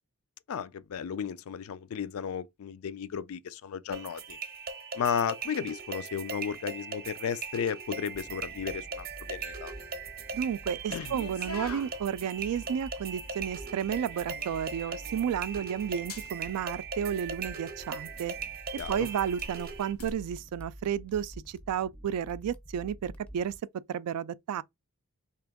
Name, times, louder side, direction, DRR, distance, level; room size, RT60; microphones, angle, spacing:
voice 1, 0.5-4.4 4.9-9.7 10.9-11.2 18.8-19.1, left 7 dB, 65° left, 0.3 m, -34 dB
sound 1, 3.9-19.9, right 5 dB, 45° right, 0.7 m, -40 dB
sound 2, 8.1-23.6, equal, 5° left, 0.4 m, -48 dB
voice 2, 10.3-18.3 18.9-23.5 23.9-24.6, right 8 dB, 90° right, 0.3 m, -32 dB
sound 3, 11.1-20.1, left 1 dB, 85° left, 1.6 m, -48 dB
3.4 x 2.9 x 3.5 m
head